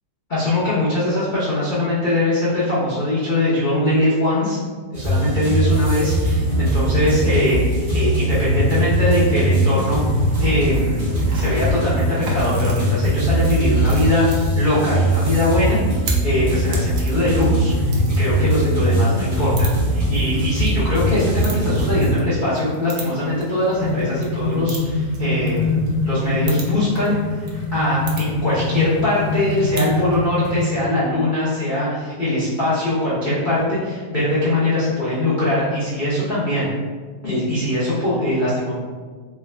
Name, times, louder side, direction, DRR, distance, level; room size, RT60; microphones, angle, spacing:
voice 1, 0.3-4.6 4.9-27.4 27.7-36.7 37.2-38.7, left 1 dB, 85° left, -10 dB, 0.4 m, -21 dB
sound 1, 4.9-22.1, right 1 dB, 25° right, 0.9 m, -20 dB
sound 2, 10.2-30.0, right 4 dB, 75° right, 0.7 m, -39 dB
sound 3, 23.3-30.8, left 3 dB, 65° left, 1.1 m, -24 dB
3.4 x 2.3 x 3.2 m, 1.5 s
omnidirectional pair, 2.1 m